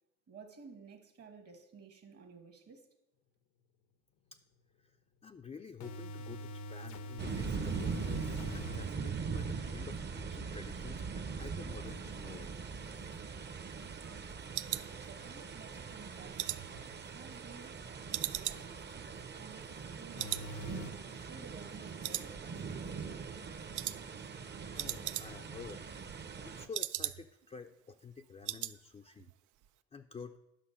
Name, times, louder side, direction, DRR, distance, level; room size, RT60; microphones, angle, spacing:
voice 1, 0.3-2.9 14.9-17.8 18.1-18.9 19.3-20.7 21.1-22.5, right 5 dB, 55° right, 5 dB, 1.4 m, -54 dB
sound 1, 4.3-4.4 5.8-8.9 20.2-20.9, equal, 75° left, 0.9 m, -44 dB
voice 2, 4.8-12.7 24.7-25.8 26.4-29.3 29.9-30.4, left 5 dB, 20° left, 5 dB, 0.4 m, -50 dB
sound 2, 7.2-26.7, right 5 dB, 35° right, 0.8 m, -41 dB
sound 3, 12.8-15.6 16.0-17.7 18.1-19.9 20.2-20.5 20.8-20.9 21.4-21.8 22.0-22.8 23.1-23.4 23.7-24.0 24.3-24.4 24.6-25.6 25.9-27.5 27.8-27.9 28.2-28.8 29.1-29.3 29.6-29.7, right 14 dB, 80° right, 0.5 m, -40 dB
10.0 x 6.1 x 5.6 m, 0.90 s
cardioid pair, 90°, 30 cm